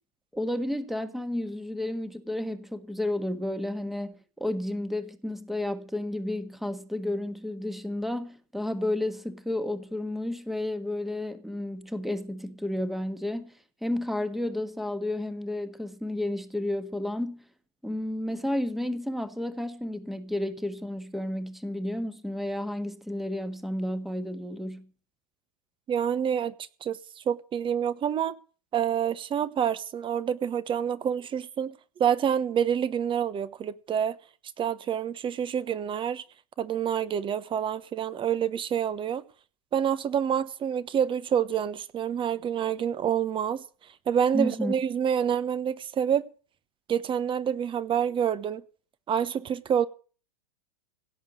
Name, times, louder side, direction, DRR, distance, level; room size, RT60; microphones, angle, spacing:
voice 1, 0.3-13.5 13.8-17.4 17.8-24.9 44.3-44.7, left 1 dB, ahead, 1.5 m, -32 dB
voice 2, 25.9-26.5 26.8-28.4 28.7-34.2 34.6-36.2 36.6-39.2 39.7-43.6 44.1-46.3 46.9-48.6 49.1-49.9, right 8 dB, 25° right, 1.1 m, -27 dB
17.0 x 8.9 x 6.5 m
hypercardioid pair, 115°, 21 cm